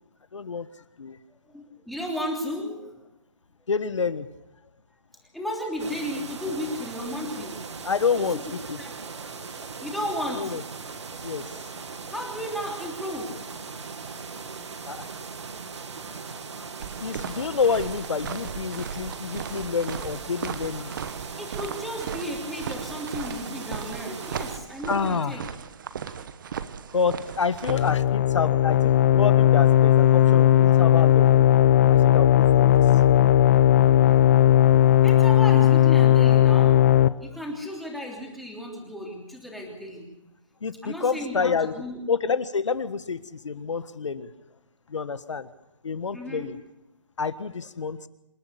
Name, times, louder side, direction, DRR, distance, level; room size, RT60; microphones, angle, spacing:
voice 1, 0.3-0.7 1.0-1.2 3.7-4.3 7.8-8.8 9.4-9.5 10.4-10.6 11.2-11.4 14.9-15.1 17.0-21.0 24.9-25.5 26.9-31.4 31.9-32.8 40.6-41.8 42.1-44.3 44.9-45.5 45.8-46.6 47.2-48.1, left 5 dB, 70° left, 13 dB, 1.5 m, -28 dB
voice 2, 1.5-3.0 5.3-7.6 8.2-8.3 8.8-8.9 9.8-10.5 12.1-13.4 21.4-25.4 35.0-36.8 37.2-40.0 40.8-42.0 46.1-46.5, left 1 dB, ahead, -1 dB, 3.3 m, -34 dB
sound 1, 5.8-24.6, right 5 dB, 65° right, 2.5 m, -39 dB
sound 2, 16.8-27.9, right 7 dB, 40° right, 1.2 m, -37 dB
sound 3, 27.7-37.1, left 12 dB, 30° left, 0.7 m, -17 dB
27.5 x 11.5 x 8.2 m, 0.95 s
hypercardioid pair, 155°, 16 cm